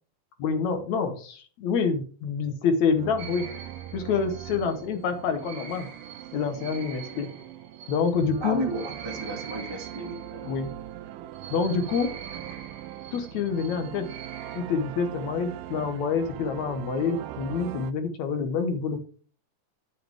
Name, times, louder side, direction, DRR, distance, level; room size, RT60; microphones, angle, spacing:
voice 1, 0.4-3.5 3.9-5.9 6.3-7.3 7.9-8.6 10.4-10.7 11.5-12.1 13.1-14.1 14.6-19.0, left 5 dB, 65° left, 7 dB, 2.2 m, -27 dB
sound 1, 2.9-17.9, right 13 dB, 90° right, 2.2 m, -41 dB
sound 2, 3.2-10.7 11.3-14.6, right 6 dB, 65° right, 1.3 m, -44 dB
voice 2, 8.4-10.5, right 1 dB, 20° right, 0 dB, 0.6 m, -33 dB
9.2 x 7.9 x 3.4 m, 0.41 s
omnidirectional pair, 3.7 m